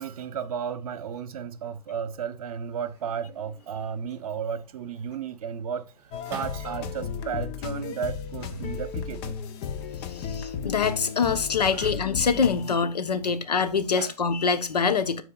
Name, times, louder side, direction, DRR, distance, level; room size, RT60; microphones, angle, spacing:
voice 1, 0.0-5.8 6.3-9.4 11.7-11.9 13.2-13.3 14.0-14.1, right 7 dB, 60° right, 1.0 m, -34 dB
sound 1, 2.2-7.2 8.3-9.4 9.7-10.2 10.6-12.6 12.9-13.0, right 3 dB, 15° right, 4.3 m, -50 dB
sound 2, 6.1-12.7, left 7 dB, 30° left, 0.8 m, -34 dB
voice 2, 10.0-15.2, left 5 dB, 85° left, 1.1 m, -25 dB
13.0 x 4.6 x 2.4 m
hypercardioid pair, 130°, 20 cm